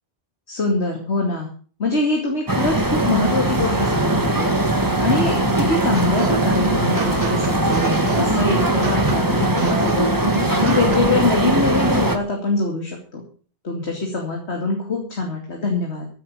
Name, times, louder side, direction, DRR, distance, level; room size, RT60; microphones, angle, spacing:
voice 1, 0.5-1.5 1.8-10.1 10.5-13.2 13.6-16.1, left 3 dB, 70° left, 1 dB, 2.9 m, -24 dB
sound 1, 2.5-12.2, right 2 dB, 15° right, 1.6 m, -20 dB
sound 2, 5.9-11.3, right 4 dB, 40° right, 1.3 m, -28 dB
14.5 x 9.3 x 6.7 m, 0.42 s
omnidirectional pair, 1.2 m